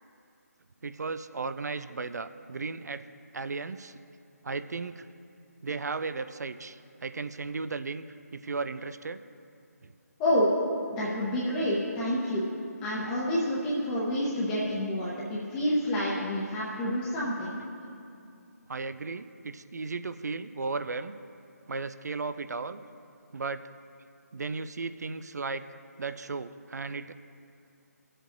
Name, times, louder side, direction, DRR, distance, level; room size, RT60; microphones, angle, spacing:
voice 1, 0.8-3.0 3.3-4.0 4.4-5.1 5.6-8.0 8.3-9.2 9.8-9.9 18.7-21.2 21.7-22.8 23.3-23.7 24.3-25.6 26.0-27.1, right 4 dB, 75° right, 12 dB, 0.4 m, -35 dB
voice 2, 10.2-10.5 10.9-12.4 12.8-17.6, equal, 15° left, -8 dB, 0.8 m, -28 dB
18.0 x 7.7 x 2.6 m, 2.5 s
figure-of-eight pair, 160°, 9 cm